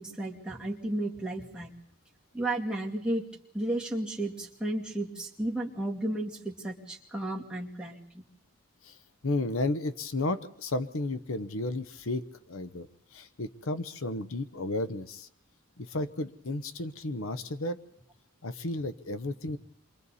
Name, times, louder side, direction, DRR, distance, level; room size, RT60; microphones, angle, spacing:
voice 1, 0.0-1.7 2.3-3.2 3.5-8.2, right 1 dB, 5° right, -2 dB, 2.3 m, -33 dB
voice 2, 9.2-12.9 13.1-15.3 15.8-17.8 18.4-19.6, left 2 dB, 70° left, 12 dB, 0.9 m, -33 dB
28.5 x 23.5 x 4.2 m, 0.67 s
head